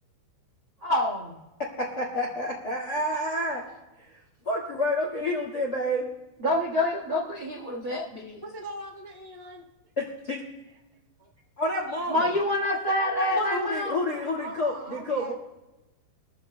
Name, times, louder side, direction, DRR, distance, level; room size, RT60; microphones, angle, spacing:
voice 1, 0.8-1.4 6.4-8.4 12.1-14.0, left 1 dB, 85° right, -2 dB, 1.1 m, -27 dB
voice 2, 1.8-3.7 4.0-6.1 10.0-10.4 11.6-12.3 13.2-15.3, left 1 dB, 80° left, -2 dB, 0.8 m, -29 dB
voice 3, 8.4-9.7 11.2-11.3 12.2-13.3 14.1-15.3, right 1 dB, 30° left, -3 dB, 0.4 m, -42 dB
23.5 x 14.0 x 2.2 m, 1.0 s
omnidirectional pair, 5.1 m